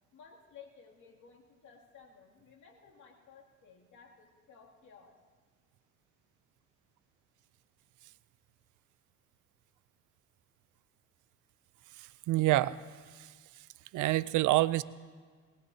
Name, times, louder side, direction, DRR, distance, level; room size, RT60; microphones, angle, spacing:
voice 1, 0.1-5.2, left 6 dB, 75° left, -2 dB, 2.7 m, -56 dB
voice 2, 12.0-12.8 13.2-13.3 13.9-14.8, right 16 dB, 85° right, 17 dB, 0.5 m, -27 dB
21.0 x 19.5 x 2.8 m, 1.6 s
cardioid pair, 90°, 30 cm